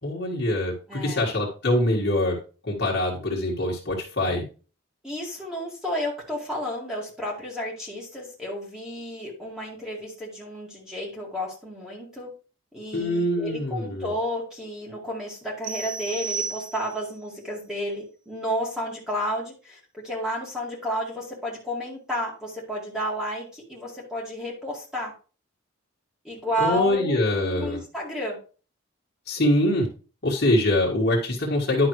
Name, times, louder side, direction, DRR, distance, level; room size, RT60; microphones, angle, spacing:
voice 1, 0.0-2.4 2.6-4.4 12.9-14.1 26.6-27.8 29.3-29.9 30.2-31.9, left 1 dB, 50° left, -4 dB, 1.8 m, -24 dB
voice 2, 0.9-1.2 5.0-12.3 12.7-25.1 26.2-28.4, equal, 5° right, -4 dB, 2.1 m, -31 dB
sound 1, 15.6-17.2, right 5 dB, 60° right, 1.1 m, -33 dB
10.5 x 5.9 x 3.2 m, 0.37 s
head